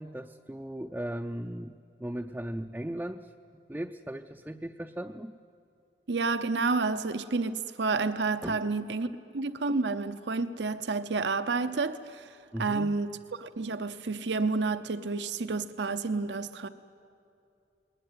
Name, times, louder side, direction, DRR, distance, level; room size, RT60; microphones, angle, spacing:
voice 1, 0.0-1.7 2.0-3.3 3.7-5.3 8.4-8.7 9.0-9.1 12.5-12.9, right 1 dB, 10° right, 0.4 m, -37 dB
voice 2, 6.1-9.1 9.3-12.3 12.6-13.1 13.4-16.7, right 3 dB, 85° right, 0.8 m, -30 dB
20.5 x 19.0 x 9.4 m
head